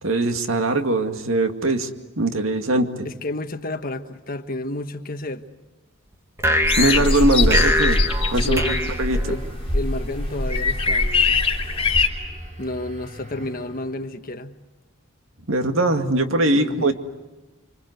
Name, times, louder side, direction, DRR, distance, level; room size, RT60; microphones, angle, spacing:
voice 1, 0.0-1.9 2.2-3.1 6.8-8.0 8.3-8.6 9.0-9.4 15.5-16.9, right 2 dB, 75° right, 2.2 m, -21 dB
voice 2, 3.0-5.5 8.4-8.9 9.2-9.4 9.7-11.4 12.6-14.5 16.5-16.9, left 2 dB, 45° left, 1.3 m, -31 dB
sound 1, 6.4-9.8, equal, 15° right, 2.2 m, -24 dB
sound 2, 6.6-12.1, left 3 dB, 25° left, 3.5 m, -22 dB
sound 3, 7.3-14.0, right 1 dB, 35° right, 4.4 m, -37 dB
27.0 x 26.5 x 8.1 m
head